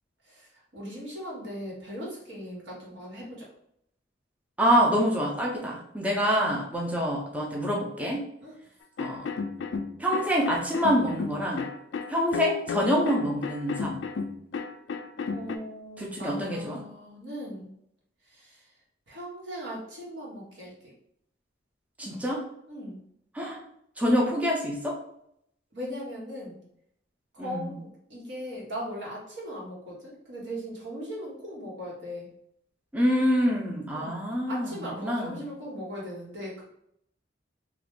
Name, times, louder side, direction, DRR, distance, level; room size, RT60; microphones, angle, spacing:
voice 1, 0.3-3.4 8.4-8.5 15.3-17.7 18.3-18.6 19.1-20.7 22.7-23.0 25.7-26.6 27.3-32.3 33.9-34.2 34.5-36.6, equal, 80° right, -4 dB, 1.3 m, -38 dB
voice 2, 4.6-8.2 9.0-9.3 10.0-11.7 12.1-14.0 16.0-16.8 22.0-22.4 23.3-23.6 24.0-25.0 27.4-27.7 32.9-35.5, equal, 10° right, -2 dB, 0.5 m, -26 dB
sound 1, 9.0-15.6, left 5 dB, 70° left, 0.3 m, -33 dB
2.9 x 2.4 x 3.6 m, 0.74 s
head